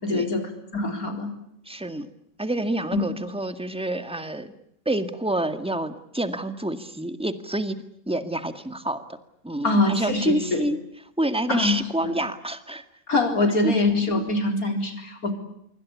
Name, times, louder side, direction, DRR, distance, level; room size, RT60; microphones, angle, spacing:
voice 1, 0.0-1.3 2.9-3.0 9.6-10.7 11.5-11.8 13.1-15.3, left 2 dB, 85° left, 5 dB, 4.5 m, -23 dB
voice 2, 1.6-2.1 2.4-4.5 4.8-7.8 8.1-9.0 9.4-10.8 11.2-12.8 13.6-13.7, right 1 dB, 5° right, 8 dB, 1.8 m, -28 dB
26.0 x 24.5 x 8.5 m, 0.76 s
omnidirectional pair, 1.5 m